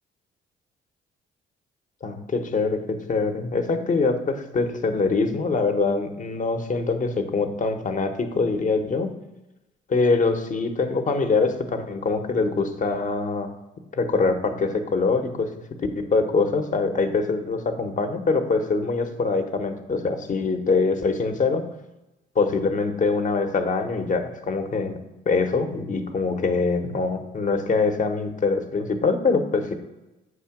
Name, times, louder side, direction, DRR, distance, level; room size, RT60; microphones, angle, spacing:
voice 1, 2.0-9.1 9.9-13.5 13.9-15.5 16.0-21.6 22.3-25.0 25.3-29.8, left 4 dB, 40° left, 7 dB, 0.9 m, -24 dB
7.8 x 2.8 x 5.8 m, 1.0 s
cardioid pair, 90°, 20 cm